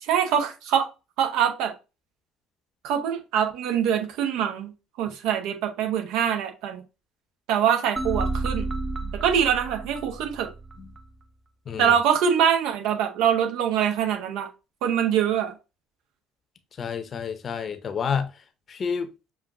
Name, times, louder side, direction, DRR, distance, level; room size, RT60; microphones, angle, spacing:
voice 1, 0.0-0.9 1.2-1.7 2.8-4.7 5.0-6.8 7.5-8.7 9.2-10.5 11.8-14.5 14.8-15.5, right 8 dB, 60° right, 1.0 m, -24 dB
sound 1, 8.0-11.0, right 2 dB, 15° right, 0.9 m, -31 dB
voice 2, 11.7-12.0 16.8-18.3 18.7-19.1, left 6 dB, 40° left, 0.7 m, -29 dB
6.7 x 2.4 x 2.5 m
figure-of-eight pair, 55°, 0 cm